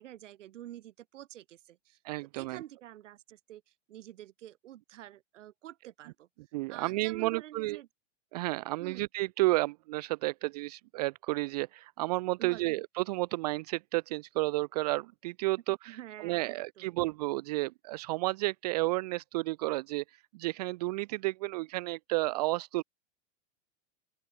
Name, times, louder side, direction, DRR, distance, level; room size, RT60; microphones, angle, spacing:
voice 1, 0.0-2.0 2.3-6.3 6.7-7.9 8.8-9.1 12.4-12.8 15.8-16.9, right 13 dB, 85° right, 1.9 m, -48 dB
voice 2, 2.0-2.6 6.5-7.8 8.3-22.8, right 21 dB, 35° right, 0.4 m, -32 dB
open air
supercardioid pair, 165°, 36 cm